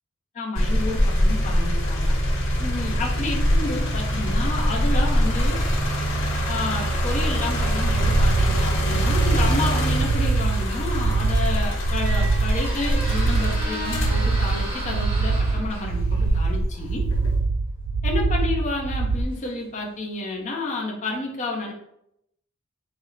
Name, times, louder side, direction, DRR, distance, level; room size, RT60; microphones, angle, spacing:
voice 1, 0.3-2.1 2.6-5.6 6.5-17.0 18.0-21.7, left 2 dB, 35° left, -1 dB, 0.6 m, -30 dB
sound 1, 0.5-15.6 16.2-17.4, equal, 60° left, 1.1 m, -24 dB
sound 2, 7.6-19.2, right 4 dB, 50° right, 0.3 m, -24 dB
Squeak, 11.3-20.0, equal, 25° right, 1.1 m, -37 dB
4.2 x 2.0 x 3.8 m, 0.77 s
head